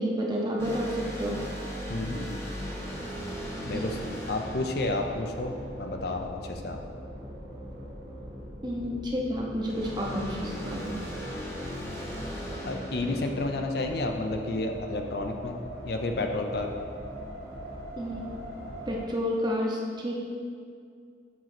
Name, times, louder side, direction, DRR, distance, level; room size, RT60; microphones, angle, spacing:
voice 1, 0.0-1.4 3.7-3.9 8.6-11.0 18.0-18.3 18.9-20.2, equal, 25° right, -1 dB, 0.8 m, -30 dB
sound 1, 0.6-6.1 9.6-14.3, equal, 15° left, 0.7 m, -38 dB
voice 2, 1.9-2.7 3.7-4.0 4.3-6.8 12.7-15.6 15.8-16.7, left 2 dB, 60° left, 4 dB, 0.6 m, -31 dB
sound 2, 2.8-19.1, equal, 60° right, 1.4 m, -42 dB
7.3 x 3.1 x 5.8 m, 2.3 s
head